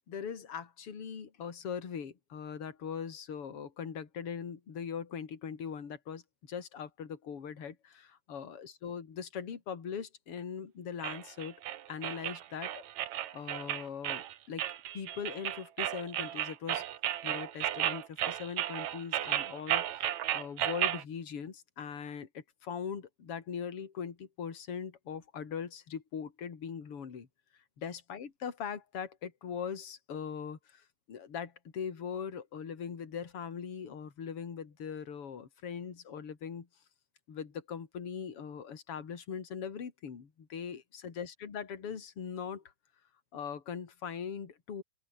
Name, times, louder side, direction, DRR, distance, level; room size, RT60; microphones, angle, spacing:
voice 1, 0.1-11.6 11.9-12.8 13.3-14.7 14.9-16.9 17.2-27.3 27.8-36.7 37.3-42.6 43.3-44.8, left 7 dB, 35° left, 3.4 m, -41 dB
sound 1, 11.0-21.0, right 12 dB, 70° right, 1.8 m, -34 dB
open air
omnidirectional pair, 4.9 m